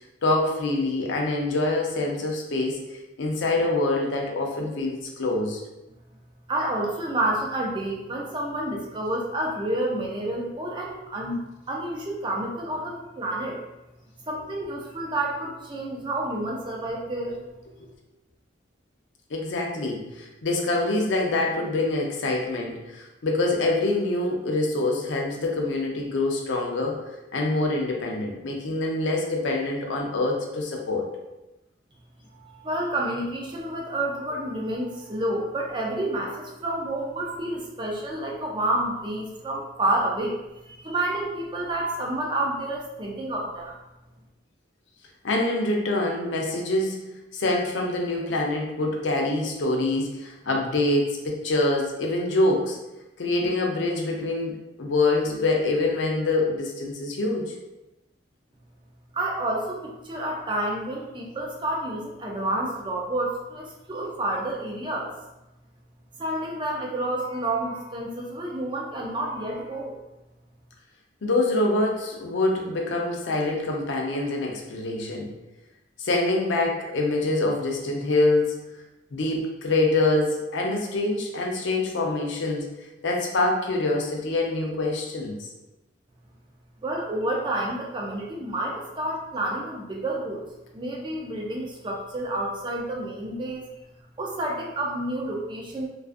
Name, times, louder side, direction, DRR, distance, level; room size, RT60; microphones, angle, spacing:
voice 1, 0.2-2.8 3.2-5.6 17.8-17.9 19.3-27.0 27.3-31.1 45.2-52.8 53.2-57.5 71.2-75.3 76.0-78.5 79.1-82.7 83.0-85.5, left 2 dB, 75° left, 0 dB, 0.5 m, -25 dB
voice 2, 6.5-13.6 14.2-17.4 32.3-40.4 40.6-43.8 59.1-65.1 66.2-70.0 86.8-90.5 90.7-93.6 94.2-95.9, right 1 dB, 25° right, -2 dB, 0.4 m, -29 dB
2.4 x 2.3 x 2.4 m, 0.97 s
head